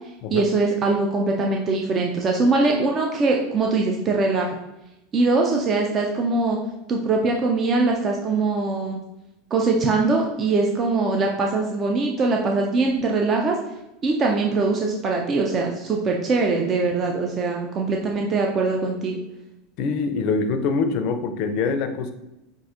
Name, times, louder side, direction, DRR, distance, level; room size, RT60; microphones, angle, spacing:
voice 1, 0.3-4.5 5.1-6.6 6.9-9.0 9.5-13.6 14.0-19.2, right 3 dB, 35° right, 1 dB, 0.5 m, -22 dB
voice 2, 19.8-22.1, left 4 dB, 60° left, 8 dB, 0.5 m, -24 dB
5.4 x 2.6 x 2.5 m, 0.92 s
hypercardioid pair, 95°, 0 cm